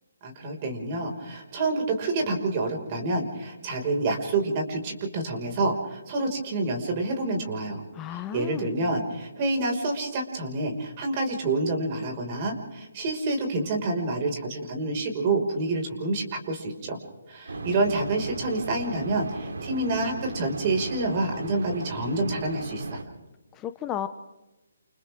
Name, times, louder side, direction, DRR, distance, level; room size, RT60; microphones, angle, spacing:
voice 1, 0.2-7.8 8.1-17.0 17.3-23.0, right 2 dB, 30° right, 2 dB, 5.5 m, -28 dB
voice 2, 7.9-8.7 23.5-24.1, left 11 dB, 15° left, 9 dB, 0.7 m, -33 dB
sound 1, 17.5-23.0, right 2 dB, 75° right, 3.5 m, -36 dB
29.0 x 29.0 x 3.7 m, 1.1 s
hypercardioid pair, 155°, 0 cm